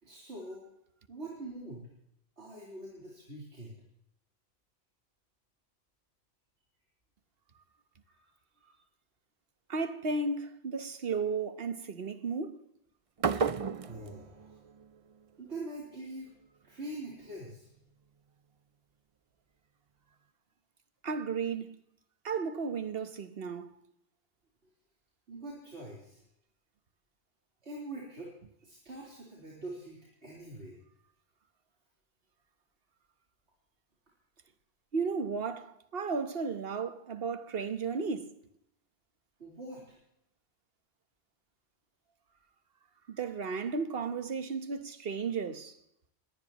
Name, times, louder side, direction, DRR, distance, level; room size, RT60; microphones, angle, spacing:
voice 1, 0.0-0.7 1.1-1.9 2.4-3.7 8.1-8.3 8.6-8.7 13.8-14.6 15.4-16.3 16.6-17.7 25.3-26.2 27.6-28.3 28.6-30.8 39.4-40.0, right 2 dB, 80° right, 4.3 m, -44 dB
voice 2, 9.7-12.6 21.0-21.7 22.2-23.8 34.9-38.3 43.1-45.7, right 4 dB, 60° right, 1.4 m, -34 dB
sound 1, 13.2-15.2, right 5 dB, 40° right, 0.5 m, -33 dB
23.0 x 18.0 x 3.0 m
omnidirectional pair, 1.1 m